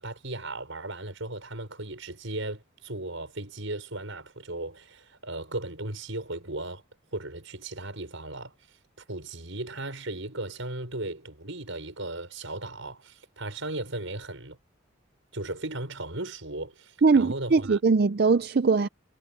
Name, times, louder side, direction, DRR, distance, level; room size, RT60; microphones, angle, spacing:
voice 1, 0.0-6.8 7.1-8.5 9.0-14.6 15.3-17.8, right 2 dB, 70° right, 6.0 m, -36 dB
voice 2, 17.0-18.9, right 4 dB, 50° right, 0.4 m, -21 dB
head